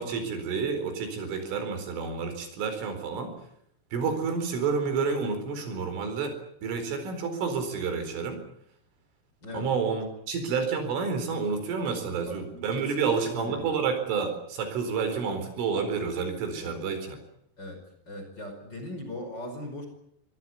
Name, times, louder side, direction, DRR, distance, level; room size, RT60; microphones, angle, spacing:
voice 1, 0.0-3.3 3.9-6.3 6.6-8.4 9.5-17.2, right 5 dB, 70° right, 7 dB, 6.8 m, -29 dB
voice 2, 11.9-13.6 16.6-16.8 17.6-17.8 18.1-19.9, left 1 dB, 20° left, 5 dB, 5.4 m, -40 dB
25.5 x 19.0 x 9.5 m, 0.71 s
omnidirectional pair, 5.9 m